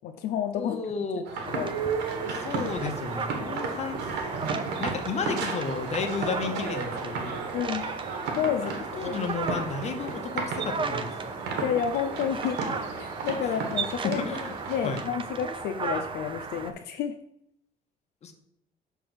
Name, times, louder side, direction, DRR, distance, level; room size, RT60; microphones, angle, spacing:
voice 1, 0.0-0.8 1.2-1.7 7.5-7.9 8.4-9.2 11.6-12.6 13.0-14.3 14.7-17.2, left 8 dB, 75° left, 7 dB, 0.6 m, -30 dB
voice 2, 0.5-1.3 2.2-4.0 4.8-7.4 8.6-11.2 13.4-13.5 14.0-14.5 14.8-15.0 18.2-18.3, left 5 dB, 40° left, 6 dB, 1.0 m, -33 dB
sound 1, 1.3-15.0, right 4 dB, 80° right, 1.4 m, -34 dB
sound 2, 1.4-16.7, right 5 dB, 30° right, 0.6 m, -36 dB
6.4 x 3.4 x 6.1 m, 0.75 s
cardioid pair, 110°, 17 cm